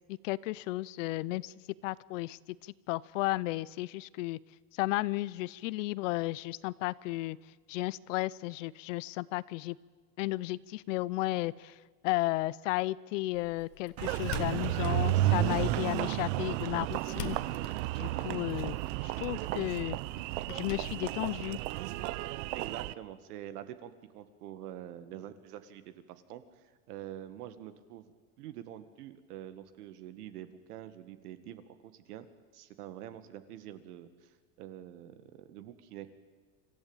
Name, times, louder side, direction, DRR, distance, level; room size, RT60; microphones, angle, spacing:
voice 1, 0.1-1.5 1.8-2.4 2.9-4.4 4.8-7.4 7.7-9.8 10.2-11.7 12.0-17.4 18.0-18.8 19.0-20.0 20.5-21.6, left 19 dB, 55° left, 21 dB, 0.6 m, -33 dB
Door, 13.3-22.3, left 10 dB, 80° left, 1.9 m, -48 dB
Engine, 14.0-22.9, right 16 dB, 50° right, 0.7 m, -32 dB
voice 2, 22.5-28.1 28.4-32.3 32.5-36.1, right 11 dB, 70° right, 11 dB, 1.9 m, -46 dB
26.5 x 14.5 x 8.9 m, 1.4 s
supercardioid pair, 150°, 47 cm